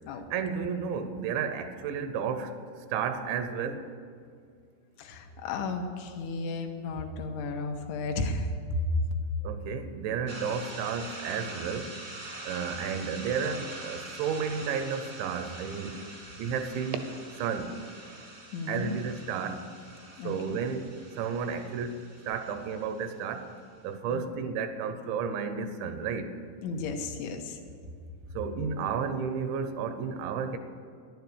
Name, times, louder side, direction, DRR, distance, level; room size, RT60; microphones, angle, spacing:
voice 1, 0.3-2.5 2.9-3.9 9.4-11.9 12.5-16.0 16.4-17.1 17.4-17.7 18.7-19.7 20.2-23.5 23.8-26.3 28.3-30.6, right 6 dB, 80° right, 9 dB, 3.0 m, -32 dB
voice 2, 5.0-8.8 18.5-18.9 20.2-20.4 24.1-24.2 26.6-27.6, left 3 dB, 80° left, 4 dB, 3.3 m, -33 dB
sound 1, 10.3-23.6, right 2 dB, 40° right, 1.1 m, -45 dB
12.0 x 10.5 x 8.3 m, 2.2 s
omnidirectional pair, 5.4 m